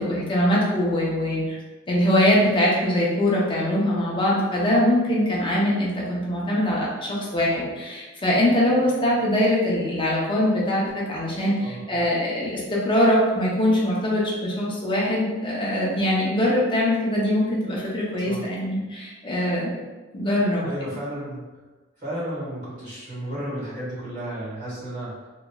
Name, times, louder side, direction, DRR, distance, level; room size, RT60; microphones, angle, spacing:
voice 1, 0.0-1.6 1.9-19.7 20.1-20.7, left 1 dB, 25° left, -5 dB, 0.6 m, -22 dB
voice 2, 11.6-12.1 18.2-18.5 20.6-21.5 22.0-25.3, right 1 dB, 40° right, -9 dB, 1.4 m, -33 dB
2.9 x 2.5 x 2.2 m, 1.2 s
head